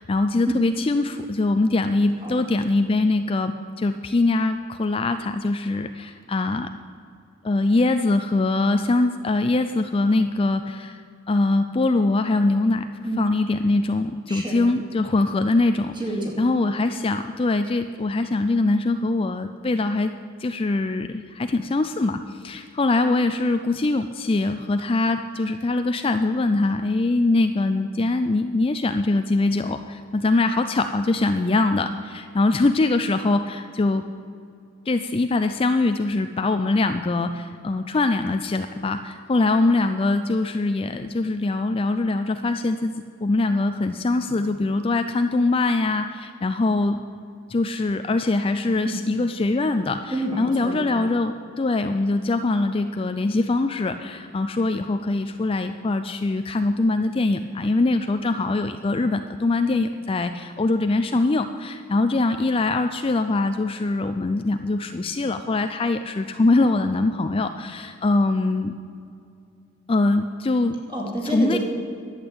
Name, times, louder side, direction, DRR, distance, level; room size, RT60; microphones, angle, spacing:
voice 1, 0.0-6.7 7.4-11.0 11.3-12.9 13.2-15.9 16.4-20.1 20.4-34.0 34.9-42.9 43.2-47.0 47.5-68.7 69.9-70.8 71.2-71.6, left 2 dB, 25° left, 8 dB, 0.4 m, -23 dB
voice 2, 15.9-16.4 48.8-49.0 50.1-50.8 70.9-71.6, right 1 dB, 20° right, -2 dB, 2.8 m, -28 dB
12.0 x 8.2 x 8.7 m, 2.5 s
head